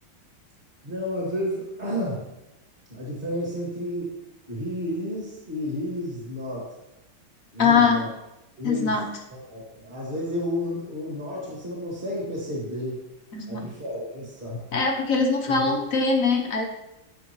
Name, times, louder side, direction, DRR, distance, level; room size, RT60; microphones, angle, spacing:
voice 1, 0.8-2.3 2.9-4.1 4.5-6.7 7.5-8.1 8.6-9.0 9.3-13.0 13.5-14.6 15.1-15.2 15.5-15.8, equal, 25° right, -4 dB, 2.2 m, -31 dB
voice 2, 7.6-8.0 8.6-9.1 13.3-13.6 14.7-16.6, left 5 dB, 50° left, 2 dB, 1.1 m, -22 dB
12.5 x 6.5 x 3.1 m, 0.92 s
omnidirectional pair, 2.4 m